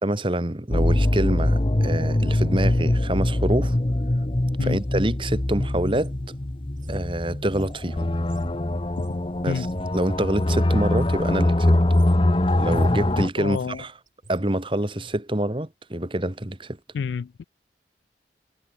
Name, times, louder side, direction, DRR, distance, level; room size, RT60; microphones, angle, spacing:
voice 1, 0.0-3.8 4.6-6.1 6.9-8.1 9.4-9.7 9.9-11.8 12.6-13.9 14.3-16.8, right 1 dB, 30° right, 1.6 m, -26 dB
sound 1, 0.7-13.3, left 1 dB, 30° left, 0.9 m, -23 dB
sound 2, 5.8-10.6 10.9-11.3 11.8-12.2 12.5-12.9 13.3-13.8 14.1-14.5 15.0-15.2, right 1 dB, 45° right, 3.5 m, -46 dB
voice 2, 13.4-13.8 16.9-17.4, left 6 dB, 80° left, 0.3 m, -29 dB
head